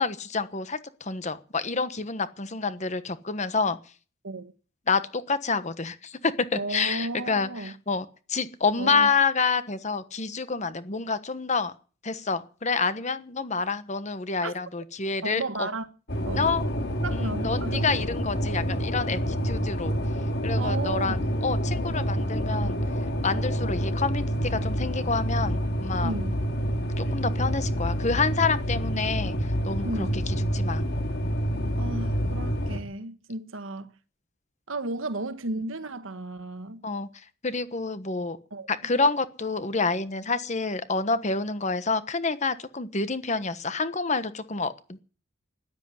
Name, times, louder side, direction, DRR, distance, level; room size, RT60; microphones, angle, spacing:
voice 1, 0.0-3.8 4.9-11.7 12.0-15.7 16.3-16.6 17.1-20.0 20.4-22.8 23.2-26.1 27.0-30.8 36.8-38.4 38.7-45.0, left 4 dB, 35° left, 1.2 m, -28 dB
voice 2, 6.5-7.7 8.8-9.1 14.4-14.5 15.2-15.9 16.3-16.5 17.0-17.9 20.6-21.3 26.0-26.4 29.8-30.2 31.8-33.9 34.7-36.8 38.5-38.7, right 2 dB, 70° right, 1.4 m, -34 dB
sound 1, 16.1-32.8, equal, 55° left, 2.2 m, -28 dB
13.0 x 10.5 x 9.7 m
head